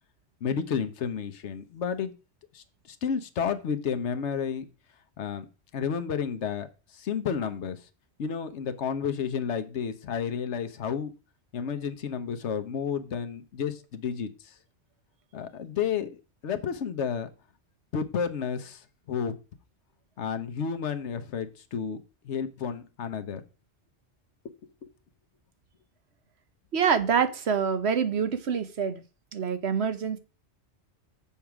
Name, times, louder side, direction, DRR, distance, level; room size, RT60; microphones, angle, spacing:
voice 1, 0.4-2.1 2.5-4.6 5.2-5.4 5.7-7.9 8.2-11.1 11.5-14.6 15.3-16.2 16.4-17.3 17.9-19.4 20.2-22.0 22.2-23.4 24.8-24.9, left 7 dB, 90° left, 1.2 m, -31 dB
voice 2, 26.7-29.0 29.3-30.2, right 7 dB, 70° right, 1.2 m, -26 dB
7.2 x 4.7 x 5.9 m
omnidirectional pair, 1.1 m